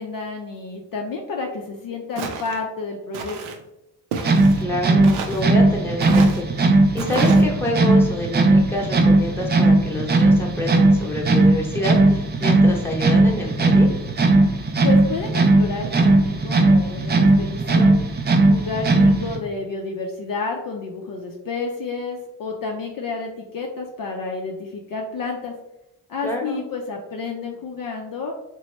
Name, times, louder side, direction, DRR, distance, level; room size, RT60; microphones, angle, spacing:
voice 1, 0.0-3.4 14.8-17.9 18.5-25.5 26.1-28.3, left 4 dB, 45° left, 1 dB, 0.5 m, -30 dB
Walk footsteps, 2.2-2.6 3.1-3.6 4.1-4.6 5.0-5.5 6.0-6.4 7.0-7.4, right 5 dB, 80° right, 0.6 m, -30 dB
sound 1, 4.2-19.4, right 2 dB, 25° right, 0.4 m, -17 dB
voice 2, 4.6-13.9 26.2-26.6, left 1 dB, 5° left, -2 dB, 0.9 m, -27 dB
2.9 x 2.2 x 3.1 m, 0.90 s
hypercardioid pair, 45°, 47 cm